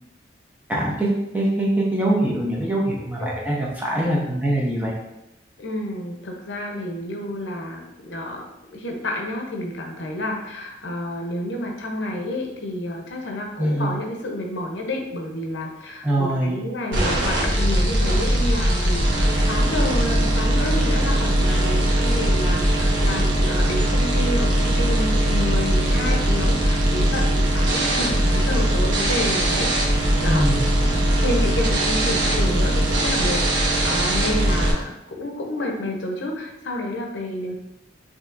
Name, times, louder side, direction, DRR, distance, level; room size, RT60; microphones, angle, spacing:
voice 1, 0.7-4.9 13.6-13.9 16.0-16.6 30.2-30.7, right 1 dB, 10° right, -4 dB, 0.8 m, -23 dB
voice 2, 5.6-29.7 30.2-30.4 31.2-37.5, left 1 dB, 75° left, 1 dB, 0.7 m, -30 dB
sound 1, 16.9-34.7, right 1 dB, 75° right, 0.9 m, -20 dB
5.6 x 2.8 x 2.5 m, 0.91 s
head